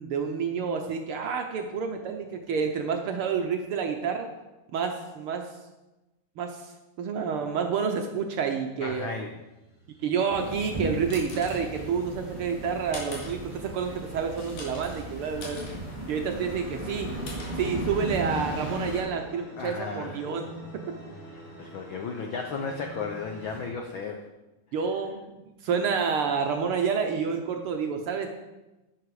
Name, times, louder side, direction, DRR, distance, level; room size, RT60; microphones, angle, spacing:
voice 1, 0.0-4.3 4.7-5.5 6.4-6.7 7.0-9.1 10.0-15.7 16.1-17.1 17.6-20.5 24.7-28.3, right 6 dB, 75° right, 4 dB, 1.3 m, -29 dB
voice 2, 8.8-9.3 19.6-20.3 21.3-24.2, left 5 dB, 90° left, 4 dB, 1.0 m, -34 dB
sound 1, 9.1-23.7, right 2 dB, 50° left, 4.5 m, -48 dB
sound 2, 10.3-19.0, right 1 dB, 15° right, 3.0 m, -36 dB
sound 3, 10.7-18.4, left 2 dB, 75° left, 3.9 m, -45 dB
11.0 x 9.6 x 4.8 m, 1.0 s
omnidirectional pair, 3.4 m